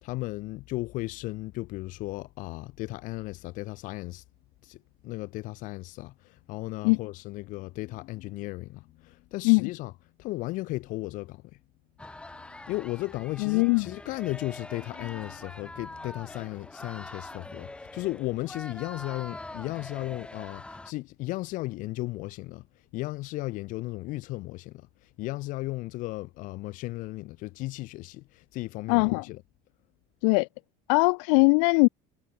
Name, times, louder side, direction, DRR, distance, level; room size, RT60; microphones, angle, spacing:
voice 1, 0.0-4.2 4.6-4.8 5.0-9.9 10.2-11.5 12.3-22.7 22.9-24.9 25.2-29.4, left 20 dB, 55° left, 4.5 m, -35 dB
sound 1, 12.0-20.9, left 2 dB, 5° left, 1.6 m, -44 dB
voice 2, 13.4-13.9 28.9-29.2 30.2-30.5 30.9-31.9, left 35 dB, 75° left, 0.6 m, -21 dB
cardioid pair, 150°, 16 cm